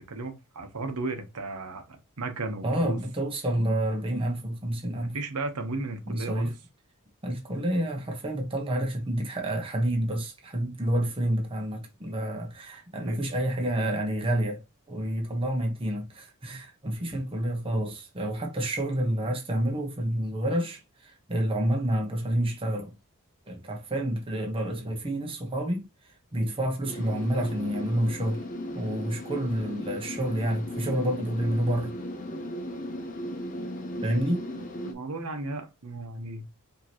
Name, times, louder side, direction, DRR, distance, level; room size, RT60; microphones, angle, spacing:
voice 1, 0.1-3.0 5.1-6.5 13.0-13.2 34.8-36.4, right 3 dB, 85° right, 0.9 m, -35 dB
voice 2, 2.6-5.2 6.1-6.5 7.2-14.6 14.9-22.9 23.5-25.9 26.3-28.4 28.7-31.9 34.0-34.4, right 1 dB, 25° right, 1.0 m, -29 dB
sound 1, 26.8-34.9, left 1 dB, 35° left, 0.8 m, -37 dB
4.8 x 2.9 x 2.9 m
head